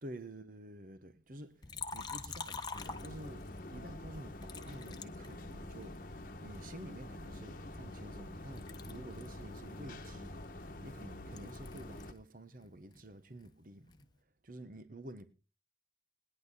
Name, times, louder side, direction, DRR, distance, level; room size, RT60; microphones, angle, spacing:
voice 1, 0.0-2.7 3.0-13.9 14.4-15.3, right 1 dB, 50° right, 1.2 m, -50 dB
Liquid, 1.6-3.6 4.4-6.0 6.5-8.3 8.5-12.2 12.5-14.1, left 4 dB, 25° left, 1.2 m, -47 dB
sound 1, 2.7-12.1, left 1 dB, 50° left, 1.2 m, -47 dB
20.0 x 10.5 x 4.1 m
head